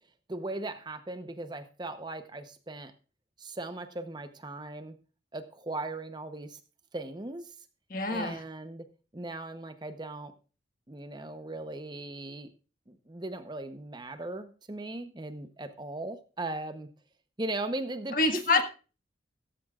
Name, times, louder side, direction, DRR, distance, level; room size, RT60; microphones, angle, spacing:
voice 1, 0.3-2.9 3.4-4.9 5.3-6.6 6.9-7.5 8.1-8.9 9.1-10.3 10.9-12.5 12.9-16.9 17.4-18.6, right 2 dB, 25° right, 9 dB, 0.8 m, -38 dB
voice 2, 7.9-8.4 18.1-18.6, left 3 dB, 45° left, 7 dB, 1.5 m, -26 dB
15.5 x 13.5 x 2.4 m, 0.35 s
head